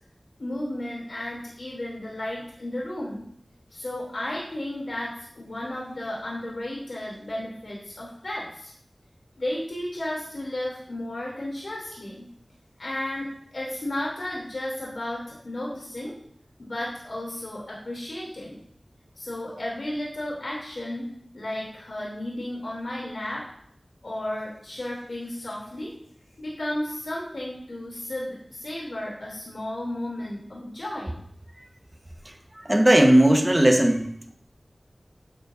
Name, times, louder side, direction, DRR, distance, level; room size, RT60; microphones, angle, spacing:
voice 1, 0.4-3.3 3.7-8.7 9.4-12.3 12.8-13.3 13.5-16.1 16.6-18.6 19.2-21.1 21.3-23.4 24.0-25.9 26.4-31.2, left 1 dB, 75° left, -4 dB, 3.0 m, -33 dB
voice 2, 32.6-34.1, right 1 dB, 20° right, 4 dB, 1.3 m, -17 dB
12.0 x 8.5 x 2.7 m, 0.64 s
wide cardioid pair, 60°, 0 cm